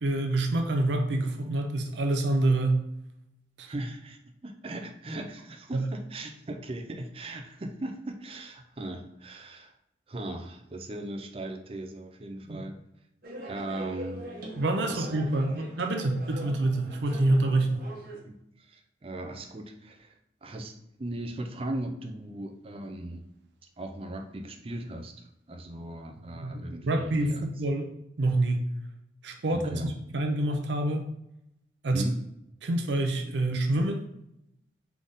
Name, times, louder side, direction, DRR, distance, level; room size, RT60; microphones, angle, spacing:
voice 1, 0.0-2.9 3.6-3.7 5.7-5.9 12.5-12.6 14.6-17.9 26.3-27.9 28.2-28.7 29.2-31.1 31.8-32.0 32.6-34.1, right 2 dB, 80° right, 4 dB, 0.6 m, -27 dB
voice 2, 3.7-9.7 10.1-12.7 13.5-14.3 14.9-15.1 15.5-15.6 18.2-20.2 20.4-23.3 23.8-27.4 29.5-29.9 31.9-32.2, right 1 dB, 30° right, 4 dB, 0.5 m, -38 dB
sound 1, 13.2-18.2, right 1 dB, 55° right, 1.1 m, -42 dB
3.9 x 3.5 x 3.6 m, 0.80 s
head